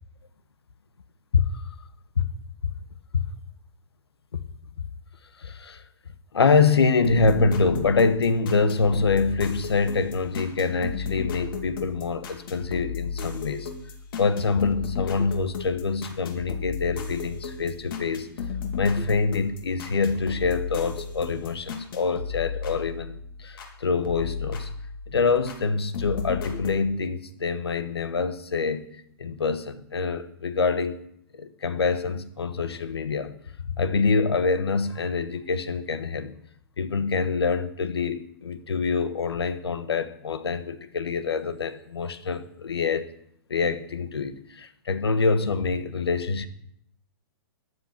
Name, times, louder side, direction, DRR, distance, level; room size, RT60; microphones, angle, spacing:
voice 1, 1.3-1.6 2.2-2.3 3.1-3.2 4.3-4.4 5.4-5.8 6.3-13.7 14.2-18.3 18.8-24.8 25.1-28.9 29.2-31.0 31.3-33.3 33.6-36.3 36.8-43.1 43.5-46.5, left 4 dB, 90° left, 12 dB, 1.3 m, -25 dB
sound 1, 7.0-23.7 24.0-25.6 25.9-26.8, left 5 dB, 65° left, 3.1 m, -34 dB
13.5 x 11.0 x 5.9 m, 0.71 s
hypercardioid pair, 130°, 13 cm